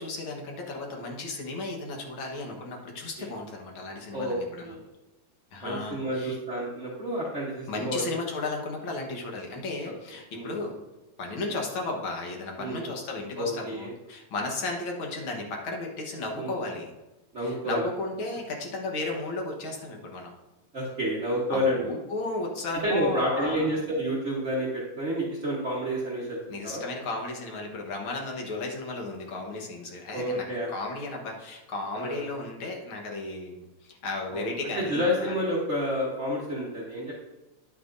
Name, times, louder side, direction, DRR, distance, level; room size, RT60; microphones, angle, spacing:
voice 1, 0.0-4.7 5.5-6.4 7.7-10.8 11.2-16.9 17.4-20.3 21.5-23.7 26.5-35.3, left 2 dB, 55° left, 0 dB, 1.8 m, -34 dB
voice 2, 4.1-4.9 5.6-8.0 9.8-9.9 10.3-10.6 12.6-12.9 13.4-13.9 16.3-16.6 17.3-17.9 20.7-21.9 22.8-26.4 26.6-26.8 30.1-30.7 32.0-32.3 34.3-37.1, equal, 60° right, -5 dB, 0.7 m, -29 dB
10.0 x 8.7 x 2.6 m, 1.1 s
omnidirectional pair, 3.4 m